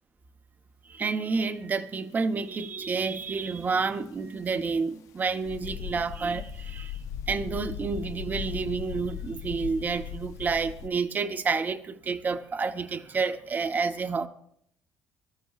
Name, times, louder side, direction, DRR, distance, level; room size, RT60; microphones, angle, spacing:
voice 1, 0.8-7.0 7.3-14.3, right 4 dB, 30° right, 0.9 m, -29 dB
sound 1, 5.5-10.9, left 9 dB, 75° left, 0.6 m, -38 dB
23.5 x 13.5 x 2.4 m
cardioid pair, 115°, 5 cm